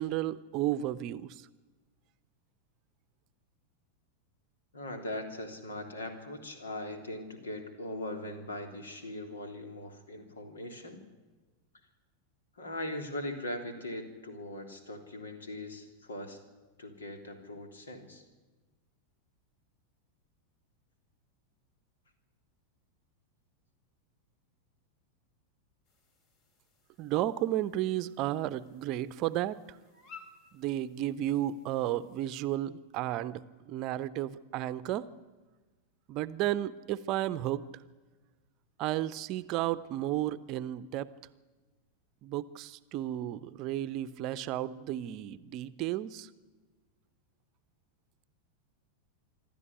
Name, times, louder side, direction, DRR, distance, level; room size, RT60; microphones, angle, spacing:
voice 1, 0.0-1.4 27.0-29.8 30.5-35.1 36.1-37.7 38.8-41.1 42.2-46.3, right 13 dB, 40° right, 15 dB, 0.8 m, -33 dB
voice 2, 4.7-11.0 12.5-16.4 16.8-18.2, left 1 dB, 70° left, 5 dB, 3.4 m, -40 dB
sound 1, 25.8-32.2, left 5 dB, 40° left, 3.7 m, -58 dB
26.0 x 12.5 x 9.9 m, 1.3 s
figure-of-eight pair, 90°, 0 cm